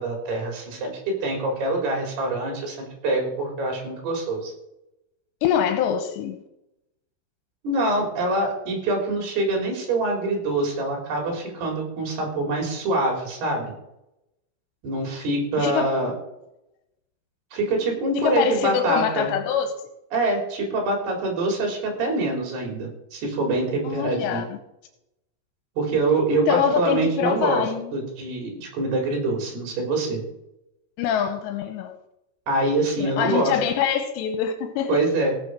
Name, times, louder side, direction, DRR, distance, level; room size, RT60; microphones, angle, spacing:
voice 1, 0.0-4.5 7.6-13.7 14.8-16.1 17.5-19.3 20.1-24.4 25.8-27.6 27.9-30.2 32.5-33.6 34.9-35.3, right 2 dB, 65° right, 2 dB, 5.5 m, -25 dB
voice 2, 5.4-6.4 15.6-16.0 18.2-19.7 23.8-24.6 26.5-27.9 31.0-32.0 33.0-35.0, left 8 dB, 85° left, 6 dB, 3.1 m, -24 dB
16.5 x 7.8 x 6.0 m, 0.85 s
omnidirectional pair, 5.1 m